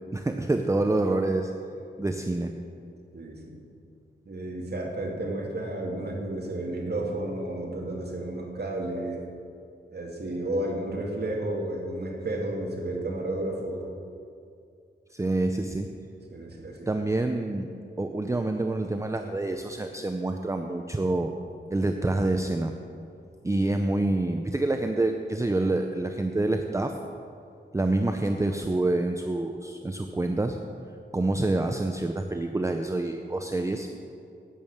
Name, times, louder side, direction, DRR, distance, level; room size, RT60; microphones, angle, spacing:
voice 1, 0.1-1.5 2.0-2.5 15.1-15.9 16.9-17.7 18.0-21.3 21.7-22.7 23.4-26.9 27.7-30.6 31.1-33.9, right 2 dB, 15° right, 5 dB, 0.5 m, -27 dB
voice 2, 3.1-3.7 4.3-9.2 9.9-13.8 16.3-16.9, right 1 dB, 55° right, -1 dB, 2.0 m, -32 dB
11.0 x 9.0 x 6.5 m, 2.5 s
wide cardioid pair, 130°, 20 cm